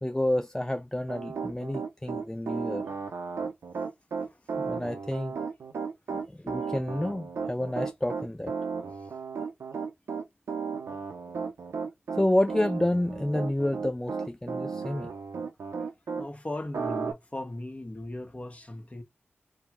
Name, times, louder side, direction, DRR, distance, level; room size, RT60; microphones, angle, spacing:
voice 1, 0.0-2.8 4.7-5.3 6.1-8.5 12.1-15.1, left 1 dB, 10° left, 0.4 m, -29 dB
Piano, 1.1-16.3 16.7-17.1, right 5 dB, 80° right, 0.7 m, -34 dB
voice 2, 16.1-19.0, left 1 dB, 30° left, 1.3 m, -38 dB
3.5 x 2.3 x 4.4 m
cardioid pair, 50°, 5 cm